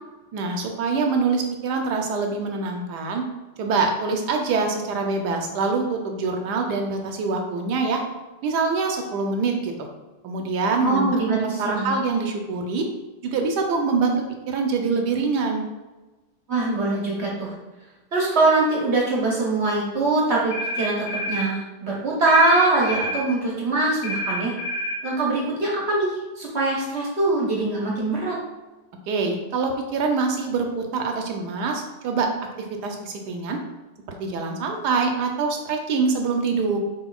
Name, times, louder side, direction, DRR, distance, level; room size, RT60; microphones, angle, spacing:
voice 1, 0.3-3.2 3.6-8.0 8.4-9.7 10.2-12.8 13.2-15.6 29.1-32.3 32.8-33.6 34.2-36.8, right 4 dB, 75° right, 3 dB, 1.2 m, -24 dB
voice 2, 10.8-11.9 16.5-17.5 18.1-24.5 25.0-28.4, right 2 dB, 45° right, -4 dB, 1.0 m, -22 dB
sound 1, 20.5-21.5 22.3-23.3 24.0-25.0, equal, 85° left, 1.4 m, -28 dB
6.1 x 3.4 x 2.3 m, 1.1 s
omnidirectional pair, 1.8 m